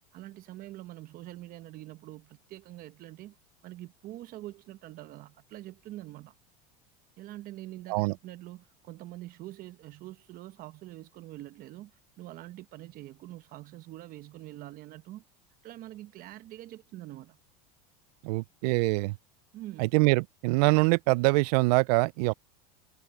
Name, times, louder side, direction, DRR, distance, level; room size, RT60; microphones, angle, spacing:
voice 1, 0.1-3.4 3.6-6.3 7.2-11.9 12.2-15.2 15.6-17.4 19.5-19.9, right 15 dB, 45° right, 0.9 m, -45 dB
voice 2, 18.2-19.2 19.8-22.3, right 25 dB, 75° right, 0.4 m, -24 dB
supercardioid pair, 125°, 20 cm